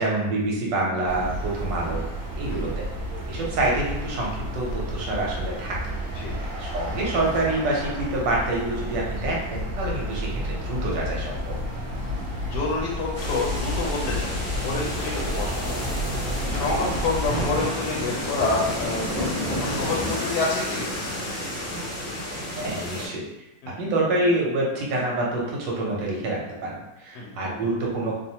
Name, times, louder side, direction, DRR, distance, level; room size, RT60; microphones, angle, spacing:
voice 1, 0.0-2.0 2.3-2.9 3.3-5.8 6.2-6.3 6.6-11.5 17.3-17.5 22.6-23.4 23.8-28.1, right 2 dB, 75° right, -2 dB, 1.4 m, -27 dB
sound 1, 1.1-17.6, equal, 60° right, 0.9 m, -31 dB
voice 2, 10.1-10.4 12.5-14.3 14.6-15.8 16.5-19.1 19.5-20.9 23.6-23.8 27.1-27.4, left 3 dB, 75° left, -2 dB, 1.1 m, -28 dB
sound 2, 11.0-20.1, equal, 10° left, 0.4 m, -34 dB
sound 3, 13.1-23.1, left 1 dB, 30° left, 0.7 m, -32 dB
3.1 x 2.0 x 2.7 m, 0.95 s
omnidirectional pair, 2.0 m